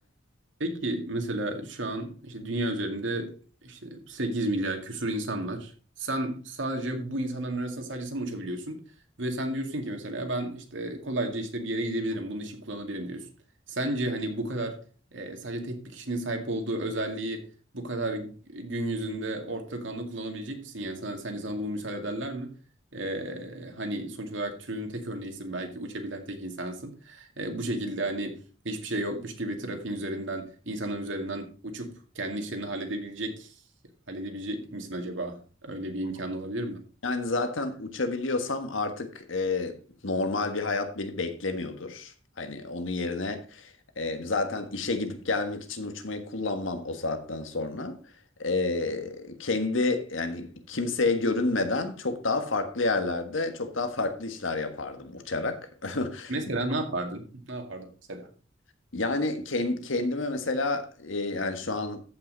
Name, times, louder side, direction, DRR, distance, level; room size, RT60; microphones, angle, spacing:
voice 1, 0.6-3.3 3.6-5.7 6.0-8.8 9.2-13.3 13.7-14.8 15.1-17.5 17.7-22.5 22.9-28.4 28.6-33.5 34.1-36.8 56.3-58.3, right 1 dB, 70° right, 2.2 m, -33 dB
voice 2, 37.0-39.8 40.0-48.0 48.4-56.3 58.9-62.0, left 3 dB, 85° left, 1.5 m, -30 dB
14.0 x 5.7 x 4.0 m
head